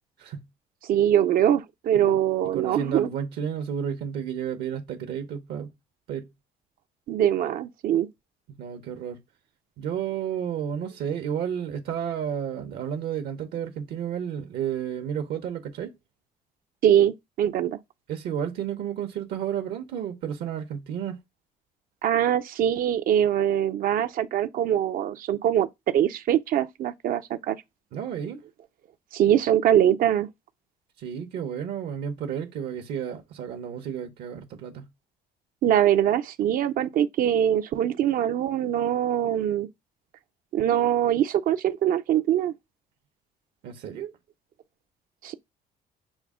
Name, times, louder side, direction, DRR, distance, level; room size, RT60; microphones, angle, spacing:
voice 1, 0.8-3.1 7.1-8.1 16.8-17.8 22.0-27.6 29.1-30.3 35.6-39.7 40.5-42.5 45.2-45.3, right 10 dB, 55° right, 0.4 m, -23 dB
voice 2, 2.5-5.7 6.1-6.3 8.6-9.2 9.8-15.9 18.1-21.2 27.9-28.4 31.0-34.9 43.6-44.1, right 8 dB, 75° right, 0.8 m, -32 dB
6.0 x 2.1 x 3.5 m
cardioid pair, 110°, 17 cm